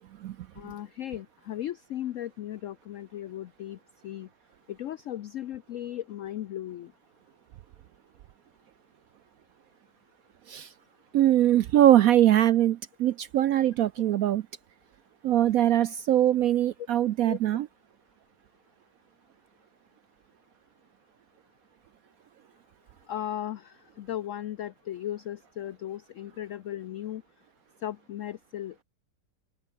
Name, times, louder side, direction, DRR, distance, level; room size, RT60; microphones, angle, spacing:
voice 1, 0.6-3.8 4.0-4.3 4.7-6.9 17.2-17.4 23.1-27.2 27.8-28.7, left 12 dB, 90° left, 0.6 m, -36 dB
voice 2, 11.1-14.4 15.2-17.7, right 12 dB, 70° right, 0.8 m, -22 dB
open air
omnidirectional pair, 2.0 m